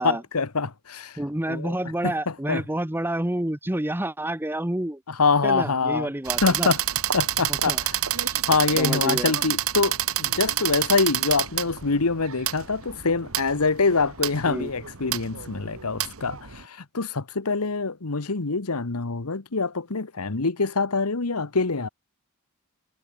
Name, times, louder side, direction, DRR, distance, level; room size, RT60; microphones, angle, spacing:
voice 1, 0.0-1.2 1.5-1.7 2.0-2.6 5.1-6.1 6.4-6.8 7.1-7.8 8.5-21.9, left 4 dB, 85° left, 1.3 m, -25 dB
voice 2, 1.2-5.0 5.4-6.7 7.5-7.8 8.2-8.4 8.8-9.3 14.4-14.7, right 1 dB, 10° right, 1.0 m, -29 dB
sound 1, 6.2-16.6, right 12 dB, 70° right, 1.6 m, -28 dB
head